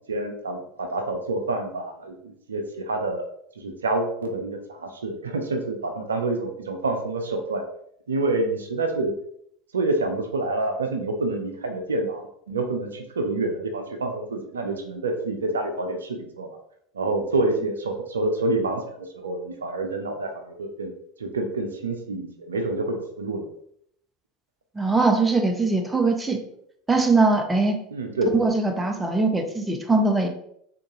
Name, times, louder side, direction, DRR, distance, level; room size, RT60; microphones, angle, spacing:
voice 1, 0.1-3.3 3.6-7.6 8.1-9.1 9.7-16.5 16.9-20.9 21.2-23.5 27.9-28.4, right 2 dB, 80° right, 5 dB, 0.4 m, -27 dB
voice 2, 24.8-26.4 26.9-27.8 28.3-30.3, right 3 dB, 15° right, 3 dB, 0.5 m, -21 dB
3.6 x 2.2 x 2.9 m, 0.69 s
figure-of-eight pair, 75°, 0 cm